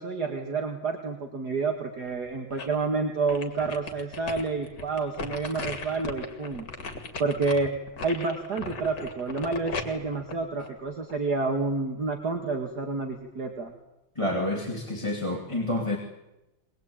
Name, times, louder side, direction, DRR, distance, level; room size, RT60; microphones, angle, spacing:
voice 1, 0.0-6.7 7.2-7.7 8.0-13.7, right 4 dB, 50° right, 3 dB, 2.5 m, -29 dB
sound 1, 2.0-2.9 3.3-11.3 11.8-11.9, left 4 dB, 55° left, 3.1 m, -38 dB
voice 2, 14.1-16.0, left 1 dB, 15° left, 0 dB, 2.9 m, -28 dB
23.5 x 21.0 x 9.0 m, 0.94 s
omnidirectional pair, 2.3 m